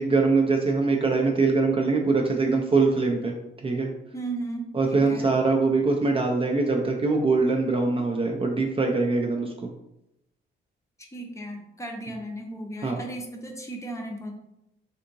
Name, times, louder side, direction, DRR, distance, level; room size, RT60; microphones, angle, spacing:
voice 1, 0.0-3.3 3.6-3.9 4.7-9.5 12.8-13.0, right 3 dB, 30° right, 1 dB, 0.4 m, -23 dB
voice 2, 4.1-5.3 11.1-14.3, right 2 dB, 15° left, 1 dB, 0.6 m, -35 dB
3.5 x 2.8 x 2.6 m, 0.86 s
cardioid pair, 90°, 20 cm